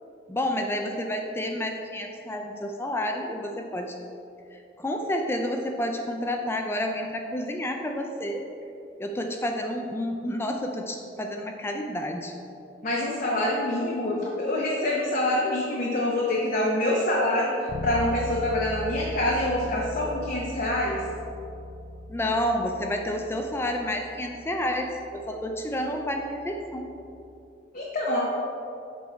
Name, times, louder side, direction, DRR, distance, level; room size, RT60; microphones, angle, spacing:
voice 1, 0.3-4.0 4.5-8.4 9.0-12.3 22.1-26.9, left 1 dB, 15° left, 3 dB, 0.4 m, -30 dB
voice 2, 12.8-17.5 17.8-21.0 27.7-28.3, left 1 dB, 50° left, -4 dB, 0.8 m, -26 dB
Bass guitar, 17.7-27.4, left 1 dB, 80° left, 0.5 m, -39 dB
7.0 x 4.6 x 4.4 m, 2.6 s
head